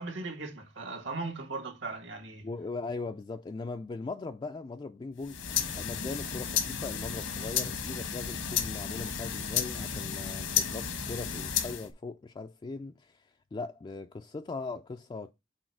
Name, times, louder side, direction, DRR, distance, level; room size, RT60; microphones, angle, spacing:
voice 1, 0.0-2.5, right 3 dB, 70° right, 1.7 m, -38 dB
voice 2, 2.4-15.3, left 3 dB, 25° left, 0.3 m, -39 dB
sound 1, 5.2-11.9, left 8 dB, 85° left, 1.3 m, -33 dB
6.2 x 4.1 x 4.6 m
head